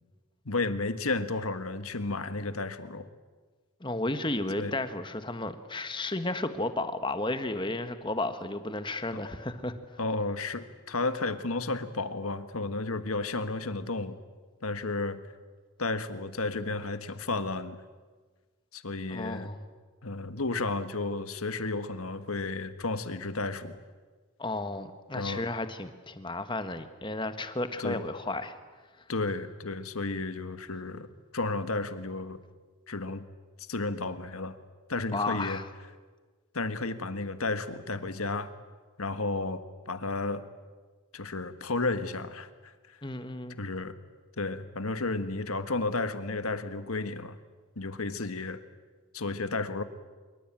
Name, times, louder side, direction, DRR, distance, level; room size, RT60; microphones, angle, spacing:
voice 1, 0.4-3.1 4.6-4.7 10.0-14.2 14.6-15.2 15.8-17.8 18.7-19.5 20.0-23.8 25.1-25.4 27.8-28.0 29.1-32.4 32.9-33.2 33.6-34.6 34.9-35.6 36.5-38.5 39.0-40.4 41.1-43.0 43.6-43.9 44.4-47.4 47.7-48.6 49.1-49.8, left 3 dB, 80° left, 11 dB, 1.6 m, -32 dB
voice 2, 3.8-9.7 19.1-19.6 24.4-28.5 35.1-35.6 43.0-43.6, left 2 dB, 20° left, 9 dB, 1.4 m, -33 dB
25.0 x 23.0 x 9.0 m, 1.4 s
head